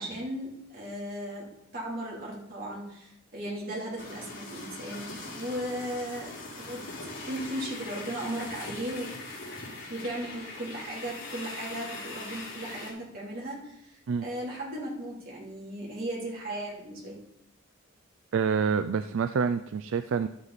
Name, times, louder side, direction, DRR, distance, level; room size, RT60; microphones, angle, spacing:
voice 1, 0.0-6.3 6.6-9.1 9.9-17.2, right 1 dB, 45° right, -4 dB, 3.2 m, -36 dB
sound 1, 4.0-12.9, left 2 dB, 65° left, 4.0 m, -41 dB
voice 2, 18.3-20.3, right 6 dB, 65° right, 10 dB, 0.4 m, -27 dB
12.0 x 8.0 x 4.1 m, 0.83 s
head